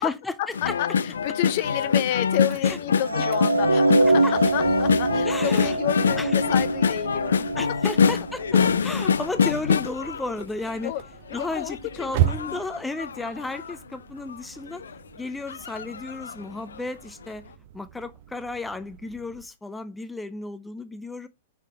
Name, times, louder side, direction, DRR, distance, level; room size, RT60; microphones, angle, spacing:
voice 1, 0.0-0.8 2.6-2.8 4.1-4.3 5.2-5.8 6.2-6.3 7.6-10.9 11.3-14.8 15.2-17.4 17.7-21.3, left 2 dB, 5° left, 0.6 m, -33 dB
sound 1, 0.5-10.9 11.3-13.7 14.3-14.4 14.7-14.9 15.5-16.4 16.8-16.9, left 6 dB, 70° left, 0.4 m, -25 dB
voice 2, 0.6-4.1 4.5-7.5 10.8-11.0 11.3-12.1 12.5-12.6, left 13 dB, 45° left, 0.8 m, -30 dB
sound 2, 1.5-19.5, right 11 dB, 45° right, 0.8 m, -37 dB
sound 3, 3.0-9.3, right 2 dB, 85° right, 0.5 m, -24 dB
5.8 x 4.5 x 4.8 m
figure-of-eight pair, 105°, 0 cm